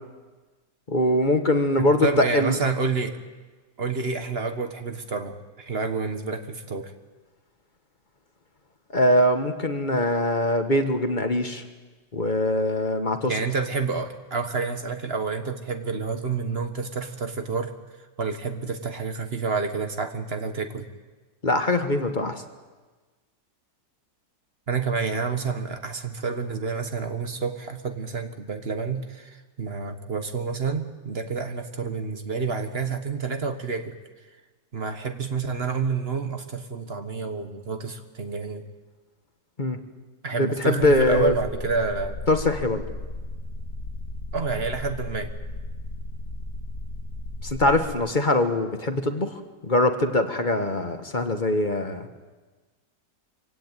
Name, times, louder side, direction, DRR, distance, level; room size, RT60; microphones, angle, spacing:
voice 1, 0.9-2.6 8.9-11.6 12.1-13.3 21.4-22.4 39.6-39.8 40.3-41.3 42.3-42.8 47.4-52.1, left 1 dB, 30° left, 7 dB, 1.4 m, -22 dB
voice 2, 1.8-3.2 3.8-6.9 13.2-17.7 18.2-20.9 24.7-34.0 34.7-38.6 40.2-42.2 44.3-45.3, right 4 dB, 35° right, 7 dB, 1.5 m, -29 dB
sound 1, 40.8-47.9, left 2 dB, 55° left, 2.2 m, -35 dB
24.5 x 16.5 x 9.1 m, 1.3 s
omnidirectional pair, 1.9 m